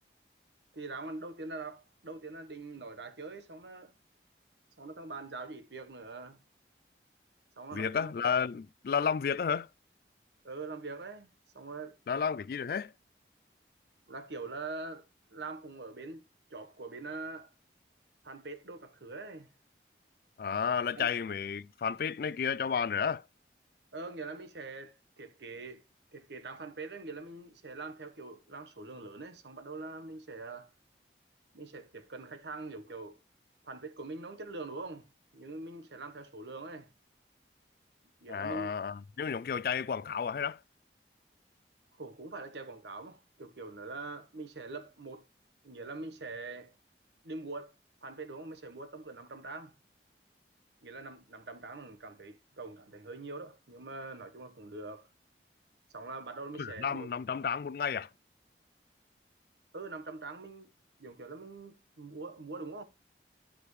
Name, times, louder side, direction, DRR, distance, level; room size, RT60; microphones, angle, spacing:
voice 1, 0.7-3.9 4.8-6.4 7.6-8.1 10.4-11.3 11.5-12.0 14.1-17.5 18.2-19.5 21.0-21.1 23.9-25.9 26.1-30.7 31.5-33.2 33.6-36.9 38.2-38.8 42.0-45.2 45.6-46.7 47.2-47.7 48.0-49.7 50.8-55.1 55.9-57.1 59.7-60.7 61.0-62.8, right 3 dB, 75° right, 1.1 m, -43 dB
voice 2, 7.7-9.7 12.1-12.9 20.4-23.2 38.3-40.6 56.6-58.1, left 6 dB, 55° left, 0.3 m, -32 dB
11.5 x 5.0 x 3.1 m
head